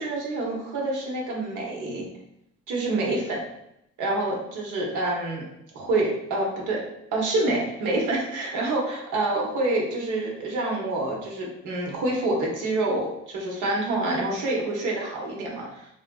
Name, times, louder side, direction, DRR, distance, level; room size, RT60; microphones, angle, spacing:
voice 1, 0.0-2.1 2.7-3.5 4.0-5.4 5.7-6.8 7.1-15.9, right 2 dB, 85° right, -2 dB, 1.0 m, -27 dB
3.4 x 2.4 x 2.3 m, 0.80 s
cardioid pair, 90°, 30 cm